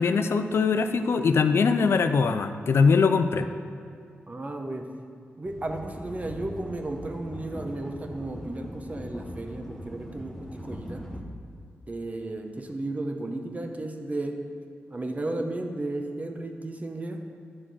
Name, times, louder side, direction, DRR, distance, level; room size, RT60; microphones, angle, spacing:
voice 1, 0.0-3.5, left 5 dB, 65° left, 9 dB, 0.4 m, -22 dB
voice 2, 4.3-4.9 5.4-11.0 11.9-14.4 14.9-17.2, right 2 dB, 35° right, 4 dB, 0.9 m, -34 dB
sound 1, 5.4-11.2, equal, 5° left, 1.0 m, -41 dB
10.5 x 3.7 x 6.3 m, 2.4 s
cardioid pair, 65°, 4 cm